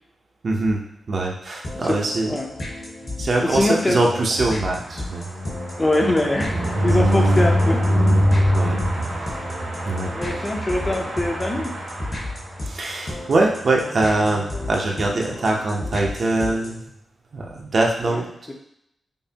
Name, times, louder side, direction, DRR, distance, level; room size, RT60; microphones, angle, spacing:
voice 1, 0.4-0.8 1.1-2.4 3.2-5.2 8.5-8.8 9.9-10.1 12.7-16.8 17.3-18.2, right 2 dB, 55° right, 0 dB, 0.6 m, -22 dB
sound 1, 1.6-16.9, left 1 dB, 50° left, 1.1 m, -34 dB
voice 2, 3.4-4.3 5.8-7.9 10.1-11.7 18.0-18.5, left 1 dB, 25° left, 1 dB, 0.6 m, -23 dB
sound 2, 3.9-12.8 13.2-13.4 13.6-13.7 14.0-14.3, equal, 75° right, 1.3 m, -23 dB
5.3 x 2.1 x 2.8 m, 0.75 s
wide cardioid pair, 95°, 0 cm